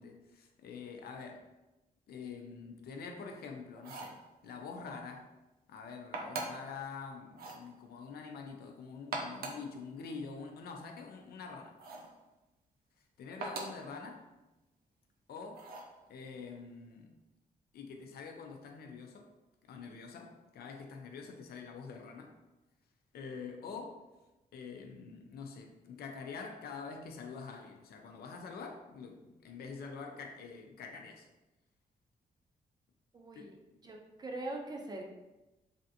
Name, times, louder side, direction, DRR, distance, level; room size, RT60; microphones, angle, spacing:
voice 1, 0.0-1.5 2.1-5.3 5.7-11.8 13.2-14.3 15.3-15.7 16.1-17.1 17.7-19.3 19.7-22.3 23.1-24.0 24.5-31.3 33.3-33.5 33.7-33.8, left 5 dB, 90° left, 3 dB, 0.5 m, -46 dB
sound 1, 3.8-4.2 6.1-6.7 7.3-7.7 9.0-9.7 11.8-12.1 13.4-13.9 15.5-15.9, right 3 dB, 80° right, 0.5 m, -41 dB
voice 2, 33.1-33.5 33.8-35.0, right 2 dB, 25° right, 1 dB, 0.4 m, -42 dB
3.3 x 2.5 x 2.7 m, 1.0 s
wide cardioid pair, 150°, 16 cm